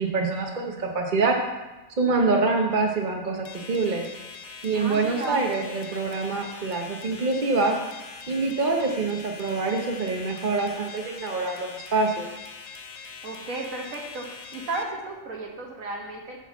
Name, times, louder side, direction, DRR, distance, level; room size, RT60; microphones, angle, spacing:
voice 1, 0.0-1.4 2.0-4.0 4.6-7.8 8.3-12.3, right 3 dB, 40° right, 1 dB, 0.9 m, -25 dB
sound 1, 3.4-14.8, left 5 dB, 55° left, 1.0 m, -42 dB
voice 2, 4.7-5.4 13.2-14.3 14.5-16.4, right 2 dB, 85° right, 0 dB, 1.8 m, -34 dB
8.2 x 4.4 x 7.1 m, 1.1 s
omnidirectional pair, 1.4 m